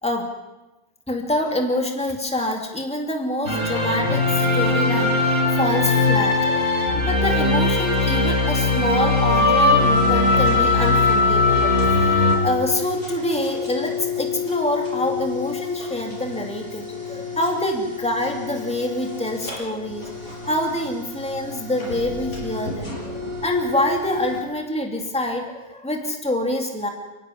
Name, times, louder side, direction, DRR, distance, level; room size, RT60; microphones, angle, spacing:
voice 1, 1.1-5.1 5.6-26.9, left 1 dB, 5° left, 2 dB, 2.8 m, -26 dB
sound 1, 3.5-12.4, left 3 dB, 55° left, 5.0 m, -19 dB
sound 2, 9.8-24.4, left 6 dB, 70° left, 6.4 m, -31 dB
29.5 x 12.0 x 9.8 m, 1.0 s
omnidirectional pair, 1.5 m